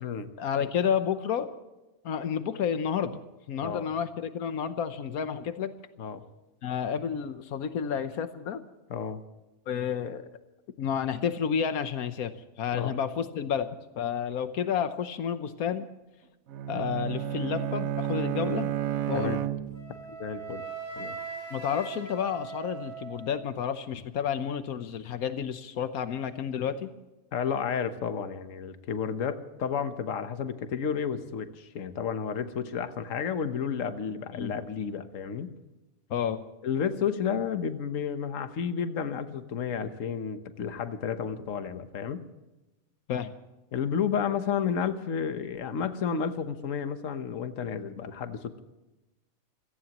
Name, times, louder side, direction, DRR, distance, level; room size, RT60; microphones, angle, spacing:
voice 1, 0.4-1.5 2.0-3.2 3.5-5.7 6.6-8.6 9.7-10.3 10.8-13.7 14.0-15.9 16.7-18.7 19.1-19.4 21.5-26.9 34.3-34.5 36.1-36.4 43.1-43.3, left 8 dB, 85° left, 10 dB, 1.4 m, -30 dB
voice 2, 8.9-9.2 12.7-12.9 19.1-19.4 20.2-20.6 21.0-21.2 27.3-35.5 36.6-42.2 43.7-48.6, left 7 dB, 65° left, 9 dB, 1.4 m, -31 dB
Bowed string instrument, 16.5-20.1, right 11 dB, 80° right, 1.2 m, -31 dB
Wind instrument woodwind instrument, 19.7-23.8, right 5 dB, 35° left, 7.2 m, -40 dB
27.0 x 17.5 x 3.0 m, 1.1 s
omnidirectional pair, 1.5 m